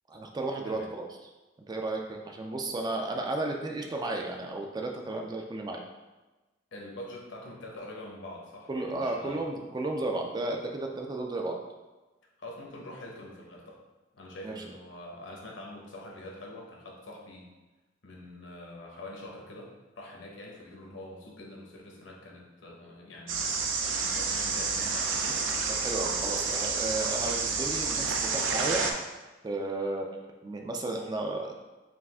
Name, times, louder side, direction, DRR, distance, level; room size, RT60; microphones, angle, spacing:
voice 1, 0.1-1.1 1.7-5.8 8.7-11.6 14.4-14.6 25.7-28.8 29.4-31.5, right 2 dB, 20° right, 2 dB, 0.3 m, -33 dB
voice 2, 6.7-9.4 12.4-13.8 14.1-17.5 18.0-19.7 20.0-23.6 23.9-25.2, left 1 dB, 70° left, -1 dB, 0.9 m, -45 dB
sound 1, 23.3-28.9, right 4 dB, 80° right, 0.5 m, -29 dB
4.6 x 2.5 x 3.5 m, 1.2 s
head